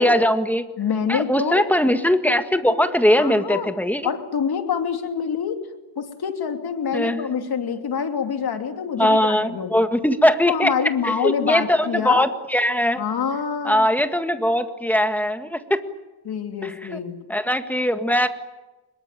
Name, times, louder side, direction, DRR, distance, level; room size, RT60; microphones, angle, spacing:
voice 1, 0.0-0.7 1.1-4.1 6.9-7.3 9.0-10.7 11.0-13.0 13.6-15.8 16.6-17.0 17.3-18.3, equal, 5° left, 8 dB, 1.8 m, -20 dB
voice 2, 0.8-1.6 3.2-3.7 4.0-5.6 6.0-9.7 10.5-12.3 13.0-13.9 16.2-17.2, left 7 dB, 65° left, 6 dB, 2.9 m, -26 dB
25.0 x 22.0 x 9.2 m, 1.1 s
wide cardioid pair, 135°, 40 cm